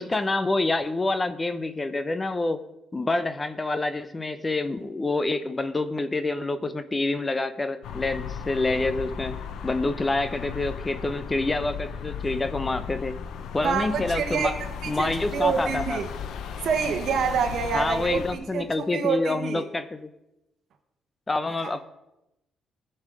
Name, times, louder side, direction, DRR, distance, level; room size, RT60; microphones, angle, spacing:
voice 1, 0.0-2.6 2.9-9.4 9.6-13.2 13.5-14.5 14.9-16.0 17.7-20.1 21.3-21.8, left 2 dB, 20° left, 11 dB, 0.6 m, -27 dB
sound 1, 7.8-18.4, left 7 dB, 75° left, 0.8 m, -36 dB
voice 2, 13.6-14.5 14.8-16.1 16.6-19.6 21.6-21.7, right 6 dB, 65° right, 3 dB, 1.1 m, -27 dB
15.0 x 5.5 x 4.8 m, 0.91 s
cardioid pair, 90°, 0 cm